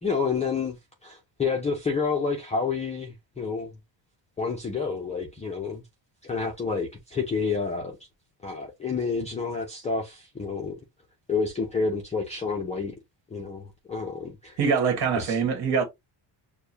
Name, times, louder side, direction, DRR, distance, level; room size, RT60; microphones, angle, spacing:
voice 1, 0.0-0.8 1.0-3.7 4.4-5.8 6.2-8.0 8.4-10.7 11.3-13.0 13.3-14.6 15.2-15.4, left 5 dB, 15° left, 0.5 m, -29 dB
voice 2, 14.6-15.8, right 6 dB, 50° right, 1.5 m, -23 dB
6.7 x 2.3 x 2.7 m
cardioid pair, 180°, 48 cm